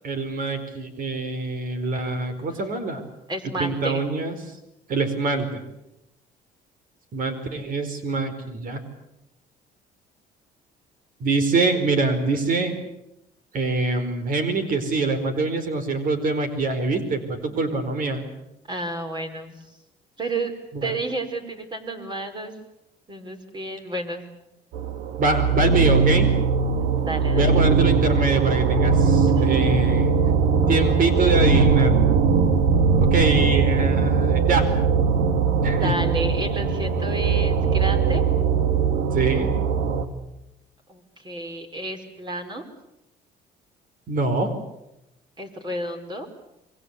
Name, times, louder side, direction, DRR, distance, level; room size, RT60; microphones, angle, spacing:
voice 1, 0.0-3.0 3.6-4.4 4.9-5.6 7.1-8.8 11.2-12.7 13.5-18.2 20.7-20.9 25.2-26.3 27.3-30.1 30.7-32.2 33.0-34.7 35.6-35.9 39.1-39.5 44.1-44.5, right 3 dB, 55° right, 8 dB, 4.6 m, -24 dB
voice 2, 3.3-4.0 18.7-19.6 20.2-20.5 20.8-22.5 23.1-24.2 27.0-27.5 29.4-29.5 35.7-38.2 40.9-42.6 45.4-46.3, right 2 dB, 25° right, 6 dB, 4.7 m, -31 dB
sound 1, 24.7-40.1, right 5 dB, 80° right, 2.3 m, -20 dB
26.5 x 23.5 x 8.4 m, 0.88 s
cardioid pair, 110°, 17 cm